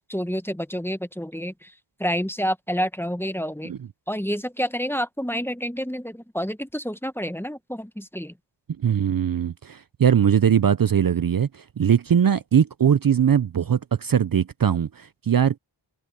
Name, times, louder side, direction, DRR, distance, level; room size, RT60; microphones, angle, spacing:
voice 1, 0.0-1.7 2.0-3.7 4.1-8.3, equal, 5° left, 1.1 m, -28 dB
voice 2, 8.8-15.6, right 8 dB, 45° right, 0.6 m, -21 dB
cardioid pair, 50°, 48 cm